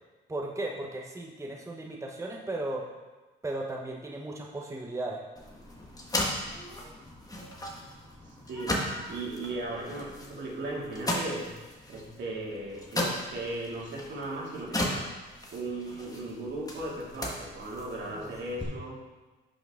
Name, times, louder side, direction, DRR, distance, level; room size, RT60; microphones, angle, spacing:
voice 1, 0.3-2.8 3.4-5.2 18.1-18.3, right 2 dB, 15° right, 0 dB, 1.0 m, -36 dB
sound 1, 5.4-18.6, left 1 dB, 20° left, 1.8 m, -36 dB
voice 2, 8.5-11.6 11.9-15.1 15.5-19.0, right 2 dB, 65° right, -4 dB, 2.6 m, -37 dB
11.5 x 6.0 x 3.8 m, 1.2 s
cardioid pair, 90°, 20 cm